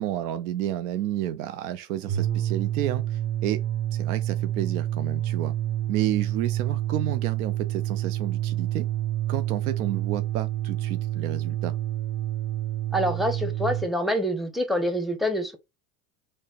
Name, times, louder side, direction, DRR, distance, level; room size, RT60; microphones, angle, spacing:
voice 1, 0.0-3.6 3.9-5.5 5.9-8.9 9.3-11.7, right 12 dB, 75° right, 0.5 m, -31 dB
sound 1, 2.0-13.9, right 13 dB, 40° right, 1.3 m, -28 dB
voice 2, 12.9-15.6, equal, ahead, 0.6 m, -26 dB
3.2 x 2.1 x 3.9 m
hypercardioid pair, 95°, 44 cm